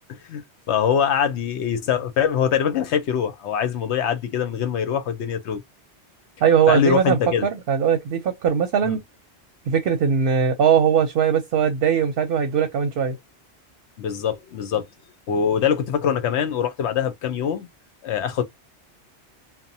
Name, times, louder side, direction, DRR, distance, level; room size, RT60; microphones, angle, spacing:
voice 1, 0.1-5.6 6.7-7.5 8.8-9.0 14.0-14.9 15.3-17.7 18.0-18.4, left 8 dB, 75° left, 0.9 m, -23 dB
voice 2, 6.4-9.0 9.7-13.2, right 7 dB, 60° right, 0.7 m, -20 dB
2.8 x 2.1 x 2.7 m
omnidirectional pair, 1.2 m